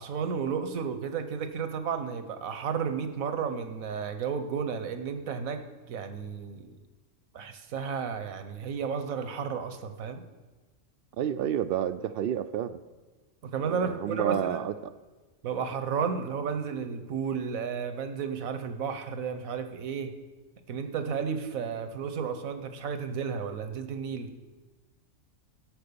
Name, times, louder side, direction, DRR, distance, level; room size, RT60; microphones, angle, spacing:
voice 1, 0.0-6.8 7.3-10.2 13.4-14.6 15.4-20.1 20.7-24.3, right 6 dB, 85° right, 8 dB, 1.4 m, -33 dB
voice 2, 11.2-12.8 13.6-14.8, right 9 dB, 65° right, 13 dB, 0.6 m, -30 dB
16.5 x 6.2 x 6.8 m, 1.3 s
omnidirectional pair, 1.4 m